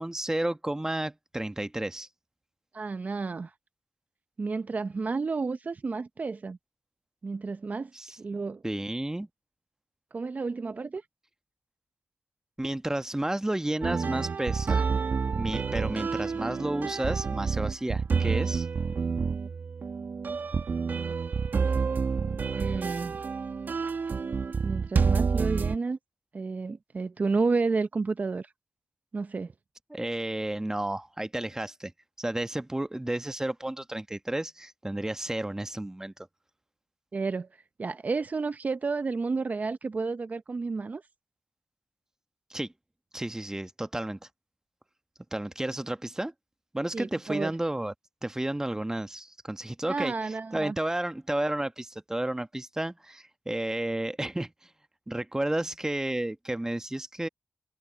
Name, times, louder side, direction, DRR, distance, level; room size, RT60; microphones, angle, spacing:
voice 1, 0.0-2.1 7.9-8.2 8.6-9.3 12.6-14.8 15.4-18.7 29.9-31.9 32.2-36.1 42.5-42.7 43.1-44.2 45.3-46.3 46.7-47.9 48.2-54.5 55.1-57.3, right 1 dB, 15° right, 1.3 m, -32 dB
voice 2, 2.7-3.5 4.4-6.6 7.2-8.6 10.1-11.0 22.5-23.2 24.6-26.0 26.3-28.5 29.1-29.5 37.1-37.5 37.8-41.0 46.9-47.5 49.9-50.7, right 4 dB, 50° right, 0.8 m, -31 dB
sound 1, 13.8-25.8, right 5 dB, 65° right, 1.8 m, -28 dB
cardioid pair, 45°, 3 cm